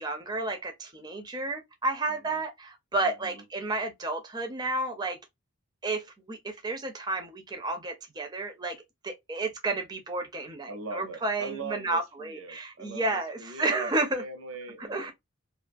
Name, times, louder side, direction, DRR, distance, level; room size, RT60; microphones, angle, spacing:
voice 1, 0.0-5.2 5.8-8.8 9.0-14.2 14.8-15.1, right 2 dB, 20° right, 0.4 m, -31 dB
voice 2, 2.1-2.4 3.0-3.4 10.7-15.1, right 3 dB, 80° right, 0.7 m, -41 dB
2.4 x 2.3 x 2.5 m
head